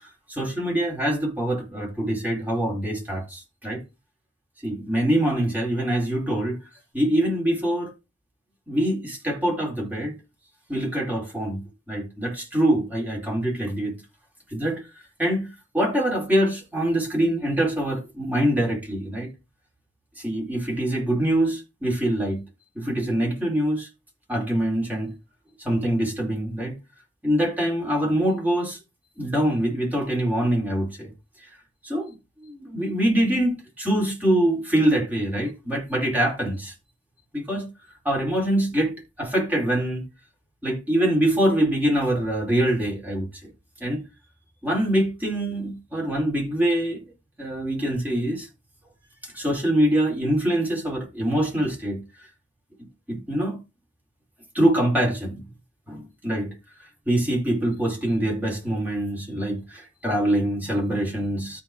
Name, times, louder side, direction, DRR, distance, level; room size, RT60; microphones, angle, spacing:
voice 1, 0.3-3.8 4.6-6.6 6.9-7.9 8.7-10.2 10.7-13.9 14.5-14.8 15.2-19.3 20.2-22.4 22.7-23.9 24.3-25.1 25.6-26.7 27.2-28.8 29.2-31.1 31.8-32.1 32.4-36.7 37.3-37.7 38.0-40.0 40.6-43.3 43.8-44.0 44.6-47.0 47.4-48.5 49.2-52.0 53.1-53.6 54.5-55.4 55.9-56.5 57.1-61.6, right 1 dB, 10° right, 4.3 m, -24 dB
13.0 x 4.4 x 5.0 m
head